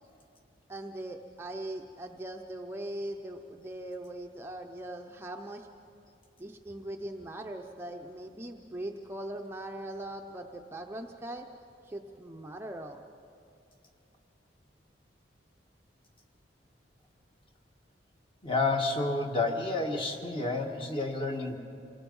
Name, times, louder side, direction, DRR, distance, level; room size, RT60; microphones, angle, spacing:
voice 1, 0.7-5.7 6.4-11.5 11.8-13.0, right 1 dB, 15° right, 2 dB, 0.7 m, -40 dB
voice 2, 18.4-21.6, left 3 dB, 30° left, 2 dB, 1.6 m, -30 dB
27.5 x 18.5 x 5.4 m, 2.5 s
head